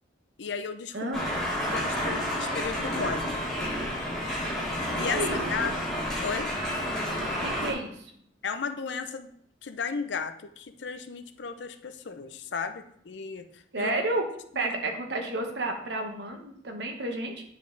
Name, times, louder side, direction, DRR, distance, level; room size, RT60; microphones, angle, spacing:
voice 1, 0.4-1.1 1.6-3.3 4.6-5.7 6.2-6.5 8.4-9.3 9.6-13.9 14.6-14.7, left 5 dB, 75° left, 9 dB, 0.5 m, -34 dB
sound 1, 1.1-7.7, equal, ahead, 1.6 m, -30 dB
voice 2, 7.4-8.1 13.7-14.2 14.5-17.4, right 2 dB, 70° right, 3 dB, 1.0 m, -31 dB
9.4 x 3.6 x 3.8 m, 0.67 s
head